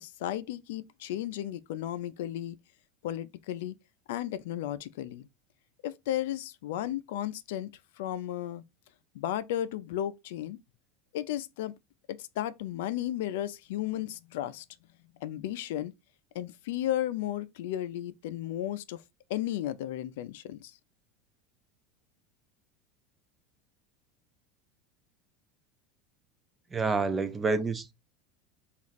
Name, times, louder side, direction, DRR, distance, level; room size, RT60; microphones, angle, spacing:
voice 1, 0.0-2.6 3.0-3.8 4.1-5.3 5.8-7.7 8.0-8.6 9.1-10.6 11.1-11.7 12.1-14.6 15.2-15.9 16.3-19.0 19.3-20.7, left 12 dB, 80° left, 0.4 m, -34 dB
voice 2, 26.7-27.9, right 4 dB, 15° right, 0.4 m, -28 dB
3.0 x 2.4 x 4.0 m
supercardioid pair, 150°, 0 cm